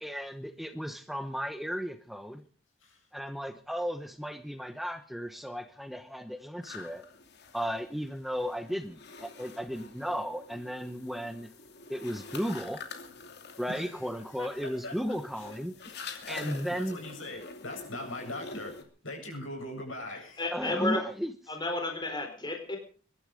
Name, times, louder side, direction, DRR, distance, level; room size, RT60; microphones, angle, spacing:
voice 1, 0.0-2.4 3.1-7.0 7.5-11.5 11.9-12.8 13.6-15.7 16.3-17.0 20.5-21.3, equal, ahead, 0.9 m, -35 dB
sound 1, 6.6-18.8, left 4 dB, 55° left, 2.8 m, -47 dB
voice 2, 13.7-14.0 14.4-15.5 16.1-18.7 19.0-20.7, left 1 dB, 75° left, 7.8 m, -41 dB
voice 3, 20.4-21.0 21.5-22.8, left 2 dB, 20° left, 4.2 m, -32 dB
23.0 x 12.0 x 5.1 m
head